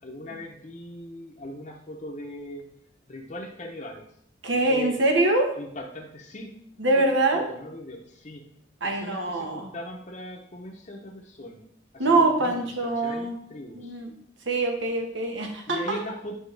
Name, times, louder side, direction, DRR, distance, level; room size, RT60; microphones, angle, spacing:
voice 1, 0.0-2.7 3.1-4.1 4.5-5.0 5.6-6.5 6.9-7.0 7.3-8.4 8.8-11.6 11.9-14.0 15.7-16.4, left 1 dB, 35° left, -1 dB, 0.7 m, -39 dB
voice 2, 4.4-5.5 6.8-7.4 8.8-9.7 12.0-13.4 13.7-14.1 14.5-16.0, right 2 dB, 80° right, 2 dB, 1.3 m, -24 dB
8.4 x 5.3 x 3.3 m, 0.66 s
head